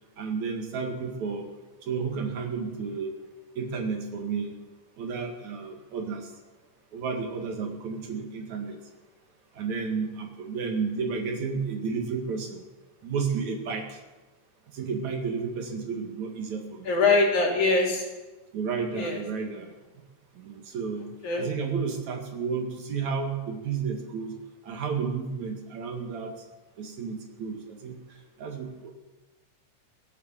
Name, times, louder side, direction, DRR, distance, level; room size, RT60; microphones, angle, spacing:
voice 1, 0.2-1.5 1.8-3.1 3.6-4.6 5.0-6.3 6.9-8.8 9.5-12.6 13.0-14.0 14.7-17.0 18.5-19.7 20.3-21.1 21.4-24.3 24.6-26.3 26.8-28.0 28.4-28.9, right 5 dB, 65° right, 3 dB, 3.3 m, -32 dB
voice 2, 16.9-18.0 19.0-19.2 21.2-21.5, left 3 dB, 70° left, -2 dB, 4.6 m, -22 dB
16.5 x 10.0 x 7.6 m, 1.2 s
omnidirectional pair, 3.5 m